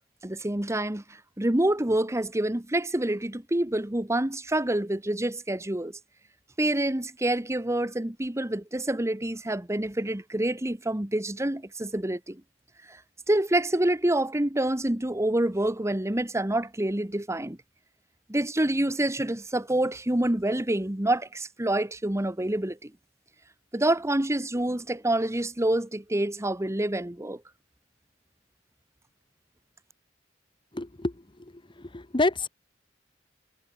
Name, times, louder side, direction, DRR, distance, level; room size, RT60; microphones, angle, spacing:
voice 1, 0.2-1.0 1.4-6.0 6.6-12.4 12.9-13.0 13.3-17.6 18.3-22.9 23.7-27.4, right 1 dB, 15° right, 1.2 m, -27 dB
voice 2, 30.7-31.1 31.9-32.5, left 2 dB, 25° left, 1.1 m, -26 dB
head